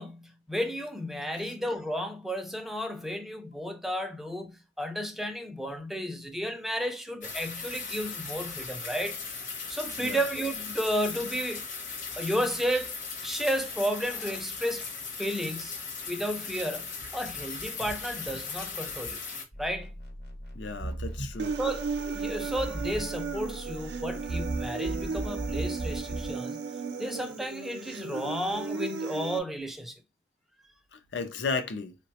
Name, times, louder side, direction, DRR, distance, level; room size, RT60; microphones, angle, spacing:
voice 1, 0.0-9.2 9.7-11.6 12.2-12.9 13.2-14.9 15.2-15.8 16.1-19.2 19.6-19.9 21.6-26.7 27.0-30.0, equal, ahead, 0.3 m, -32 dB
sound 1, 7.2-19.4, left 5 dB, 45° left, 0.7 m, -38 dB
sound 2, 19.5-26.4, right 2 dB, 65° left, 1.0 m, -37 dB
voice 2, 20.5-21.6 30.9-32.0, left 4 dB, 85° left, 0.5 m, -34 dB
Human voice, 21.4-29.4, right 4 dB, 80° right, 0.5 m, -35 dB
3.8 x 2.2 x 2.8 m
head